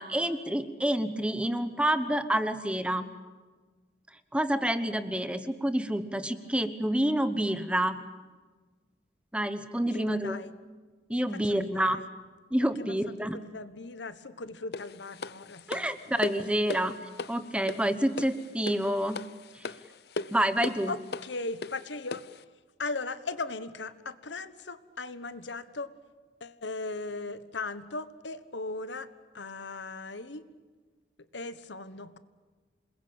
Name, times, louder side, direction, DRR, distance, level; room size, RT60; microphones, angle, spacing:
voice 1, 0.0-3.1 4.3-8.0 9.3-10.4 11.1-12.0 12.5-13.4 15.7-17.0 17.3-19.3 19.5-19.6 20.3-20.9, right 1 dB, 5° right, 11 dB, 1.0 m, -28 dB
voice 2, 9.8-10.5 11.4-12.1 12.8-16.2 20.9-22.2 22.8-25.9 26.4-29.1 29.3-30.5 31.3-32.2, left 3 dB, 85° left, 13 dB, 1.3 m, -38 dB
sound 1, 14.7-22.4, left 3 dB, 60° left, 0.7 m, -39 dB
27.5 x 21.0 x 8.8 m, 1.4 s
head